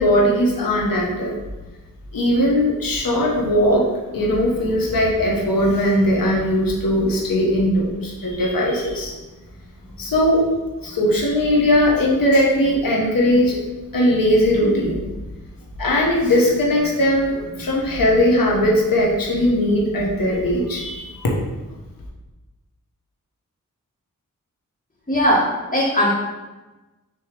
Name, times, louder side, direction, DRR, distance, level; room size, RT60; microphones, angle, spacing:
voice 1, 0.0-1.4 2.1-3.9 4.1-9.1 10.0-13.6 13.9-15.0 15.8-21.3, left 1 dB, 85° left, -3 dB, 1.4 m, -19 dB
voice 2, 25.1-26.1, equal, 25° left, -10 dB, 1.7 m, -19 dB
6.6 x 3.1 x 5.2 m, 1.1 s
cardioid pair, 55°, 33 cm